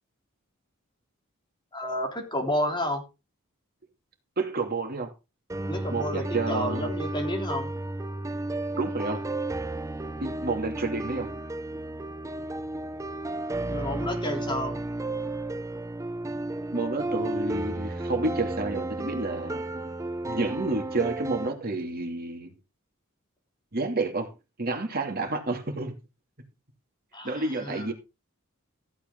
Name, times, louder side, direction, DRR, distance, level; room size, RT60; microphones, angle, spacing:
voice 1, 1.7-3.0 5.7-7.7 13.6-14.8 27.1-27.9, left 1 dB, 20° left, 3.5 m, -31 dB
voice 2, 4.4-5.1 5.9-6.9 8.7-9.2 10.2-11.3 16.7-19.6 20.3-22.5 23.7-24.3 24.6-26.0 27.2-27.9, right 3 dB, 45° right, 2.7 m, -30 dB
sound 1, 5.5-21.5, right 2 dB, 15° right, 0.5 m, -33 dB
15.0 x 8.3 x 3.9 m
head